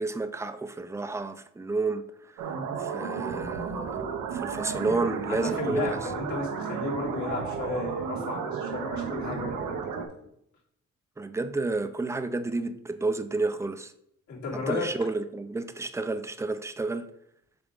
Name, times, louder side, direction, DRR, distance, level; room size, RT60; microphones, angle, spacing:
voice 1, 0.0-6.0 11.2-13.9 14.7-17.1, right 3 dB, 10° right, 0.5 m, -31 dB
sound 1, 2.4-10.0, right 6 dB, 90° right, 1.0 m, -33 dB
voice 2, 5.4-10.1 14.3-14.9, left 3 dB, 70° left, 2.8 m, -34 dB
7.1 x 4.9 x 3.8 m
cardioid pair, 90°, 30 cm